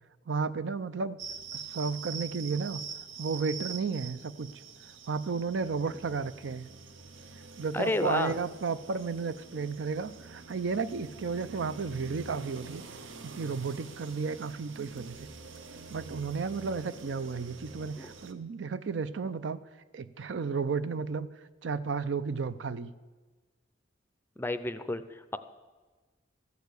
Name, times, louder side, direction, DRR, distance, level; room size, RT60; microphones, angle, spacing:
voice 1, 0.3-1.2 1.5-2.8 3.2-4.5 5.1-6.7 7.6-12.8 13.2-15.2 15.9-19.6 19.9-21.3 21.6-22.9, right 5 dB, 65° right, 14 dB, 0.5 m, -33 dB
sound 1, 1.2-18.3, right 5 dB, 80° right, 0.9 m, -46 dB
voice 2, 7.7-8.4 18.0-18.1 24.4-25.4, left 2 dB, 10° left, 11 dB, 0.5 m, -31 dB
14.0 x 6.7 x 8.1 m, 1.3 s
head